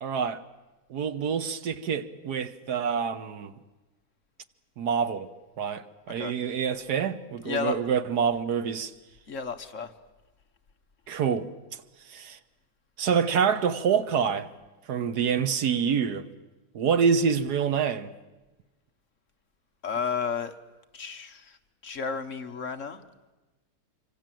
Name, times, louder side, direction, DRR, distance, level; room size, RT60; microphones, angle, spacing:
voice 1, 0.0-0.4 0.9-3.5 4.8-5.3 5.6-8.9 11.1-11.5 12.1-12.4 13.0-14.5 14.9-16.3 16.7-18.1, right 7 dB, 80° right, 1.7 m, -26 dB
voice 2, 7.4-7.8 9.3-9.9 19.8-20.5 20.9-21.6 21.8-23.0, left 6 dB, 50° left, 1.6 m, -32 dB
25.5 x 25.5 x 7.7 m
omnidirectional pair, 1.7 m